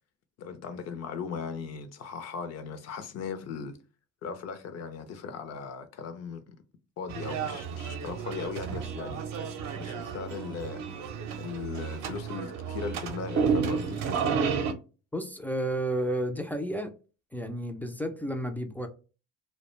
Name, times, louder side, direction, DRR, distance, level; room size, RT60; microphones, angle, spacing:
voice 1, 0.4-3.8 4.2-6.6 7.0-9.2 9.8-10.8 11.4-14.0, left 6 dB, 50° left, 0.6 m, -38 dB
sound 1, 7.1-14.7, right 6 dB, 60° right, 0.6 m, -31 dB
voice 2, 15.1-16.9 17.3-18.9, right 1 dB, 5° left, 0.3 m, -31 dB
2.3 x 2.1 x 3.0 m
supercardioid pair, 85°, 33 cm